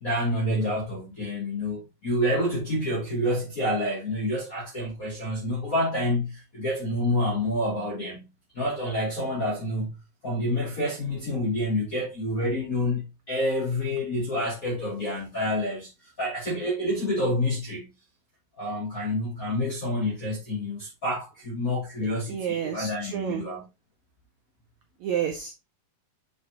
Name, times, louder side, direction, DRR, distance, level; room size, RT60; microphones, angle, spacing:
voice 1, 0.0-8.3 8.5-15.9 16.2-17.9 18.6-23.6, left 1 dB, 40° left, 1.3 m, -28 dB
voice 2, 22.3-23.4 25.0-25.5, right 8 dB, 80° right, 1.7 m, -30 dB
8.5 x 4.2 x 2.9 m
omnidirectional pair, 4.0 m